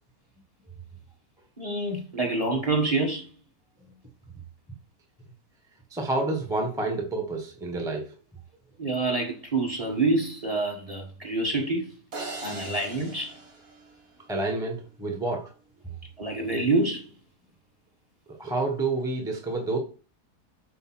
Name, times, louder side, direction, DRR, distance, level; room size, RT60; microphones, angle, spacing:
voice 1, 1.6-3.3 8.8-11.9 12.4-13.4 16.2-17.1, right 2 dB, 20° right, 1.6 m, -27 dB
voice 2, 5.9-8.1 14.3-15.5 18.3-19.8, right 2 dB, ahead, 1.3 m, -29 dB
sound 1, 12.1-14.5, right 3 dB, 55° right, 2.3 m, -40 dB
8.5 x 3.4 x 6.2 m
omnidirectional pair, 1.8 m